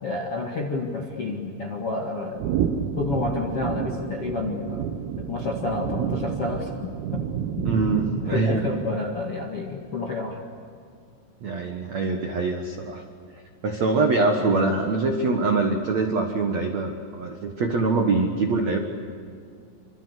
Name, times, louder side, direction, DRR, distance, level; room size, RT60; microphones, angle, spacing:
voice 1, 0.0-2.6 3.0-4.9 5.2-7.2 8.2-10.4, left 3 dB, 50° left, 1 dB, 1.7 m, -29 dB
sound 1, 2.4-9.2, right 8 dB, 90° right, 4.1 m, -30 dB
voice 2, 7.6-8.7 11.4-13.0 13.6-18.8, right 3 dB, 70° right, 4 dB, 1.6 m, -24 dB
26.5 x 26.5 x 8.3 m, 2.4 s
omnidirectional pair, 5.9 m